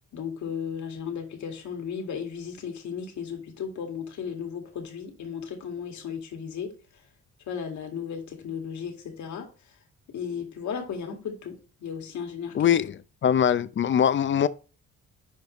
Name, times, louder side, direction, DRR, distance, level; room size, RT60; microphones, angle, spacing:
voice 1, 0.1-6.7 7.5-9.5 10.1-11.5 11.8-12.8, left 7 dB, 70° left, 2.1 m, -35 dB
voice 2, 12.5-14.5, left 8 dB, 40° left, 0.6 m, -22 dB
10.5 x 4.6 x 3.1 m
cardioid pair, 90°, 30 cm